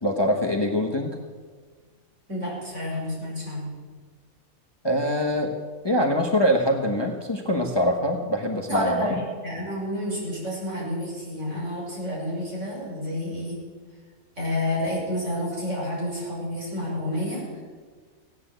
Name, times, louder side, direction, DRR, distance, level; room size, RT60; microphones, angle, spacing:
voice 1, 0.0-1.2 4.8-5.5 5.8-9.1, equal, 20° left, 2 dB, 1.2 m, -24 dB
voice 2, 2.3-3.7 8.7-13.6 14.4-17.6, left 1 dB, 55° right, -5 dB, 6.2 m, -29 dB
16.5 x 9.8 x 8.0 m, 1.5 s
omnidirectional pair, 1.5 m